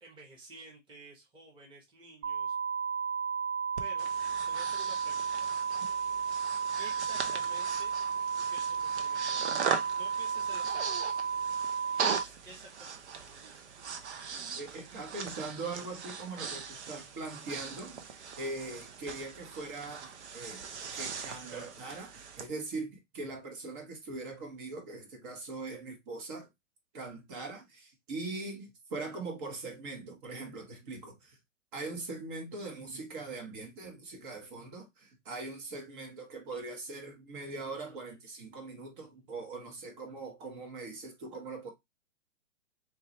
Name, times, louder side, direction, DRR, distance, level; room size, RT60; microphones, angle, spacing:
voice 1, 0.0-2.5 3.8-4.1 4.5-5.5 6.8-7.9 8.4-9.6 9.9-11.2 11.9-13.7, right 2 dB, 15° right, 1.3 m, -52 dB
sound 1, 2.2-12.2, right 6 dB, 85° right, 0.7 m, -33 dB
Breathing, 3.8-22.5, right 6 dB, 60° right, 0.9 m, -39 dB
voice 2, 14.5-20.6 20.9-26.5 26.9-31.4 31.7-41.7, right 3 dB, 40° right, 1.5 m, -41 dB
4.3 x 3.2 x 3.2 m
hypercardioid pair, 135°, 39 cm